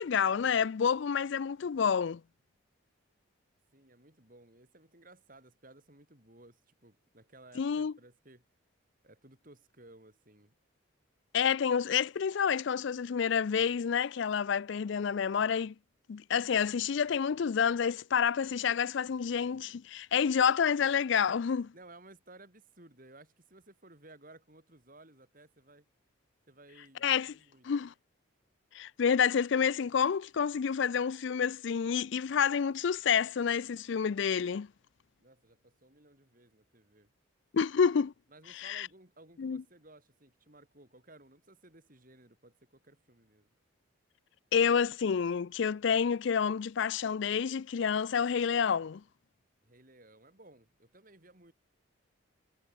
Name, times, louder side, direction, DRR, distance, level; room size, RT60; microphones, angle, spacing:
voice 1, 0.0-2.2 7.6-7.9 11.3-15.7 16.1-21.7 27.0-27.3 27.6-27.9 28.7-34.7 37.5-38.1 38.5-38.9 39.4-39.6 44.5-49.0, left 7 dB, 60° left, 0.4 m, -29 dB
voice 2, 3.7-8.5 9.0-10.5 21.7-25.9 26.5-27.7 35.2-37.1 38.3-43.5 49.6-51.5, right 2 dB, 40° right, 4.1 m, -57 dB
head